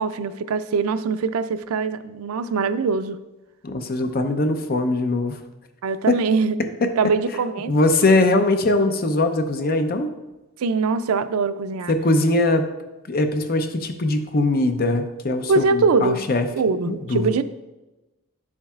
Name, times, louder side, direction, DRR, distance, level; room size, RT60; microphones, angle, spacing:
voice 1, 0.0-3.2 5.8-6.6 7.0-7.7 10.6-11.9 15.5-16.2 16.6-17.4, right 4 dB, 90° right, 12 dB, 0.4 m, -22 dB
voice 2, 3.6-5.4 6.1-6.2 6.8-6.9 7.7-10.1 11.9-12.7 13.1-16.5 16.9-17.3, left 2 dB, 45° left, 7 dB, 0.6 m, -21 dB
9.6 x 7.2 x 2.4 m, 1.0 s
head